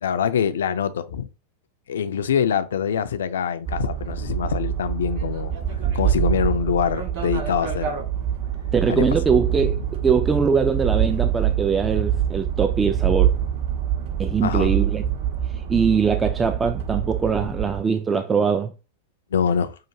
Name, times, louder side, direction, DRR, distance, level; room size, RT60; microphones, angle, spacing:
voice 1, 0.0-1.3 1.9-5.5 5.9-8.0 8.9-9.1 9.6-9.7 14.4-14.7 19.3-19.8, left 7 dB, 65° left, 0.5 m, -24 dB
sound 1, 3.7-17.8, right 10 dB, 50° right, 1.7 m, -25 dB
voice 2, 8.7-9.8 10.0-13.4 14.2-15.0 15.7-18.7, right 6 dB, 15° right, 0.4 m, -22 dB
5.6 x 2.5 x 2.8 m
figure-of-eight pair, 90°, 0 cm